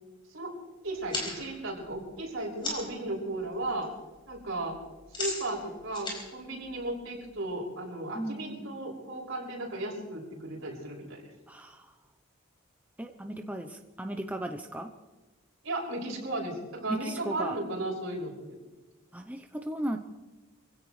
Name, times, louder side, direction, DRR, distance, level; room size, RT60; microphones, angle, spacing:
voice 1, 0.8-3.9 4.3-4.8 5.2-11.2 15.6-18.6, right 2 dB, 65° right, -4 dB, 6.1 m, -35 dB
sound 1, 0.9-3.0 3.4-3.9 4.1-7.4, left 2 dB, 25° left, 4.7 m, -38 dB
voice 2, 8.1-8.8 11.5-11.9 13.0-14.9 16.9-17.6 19.1-20.0, right 1 dB, 5° right, 5 dB, 0.7 m, -36 dB
25.5 x 16.5 x 3.2 m, 1.2 s
head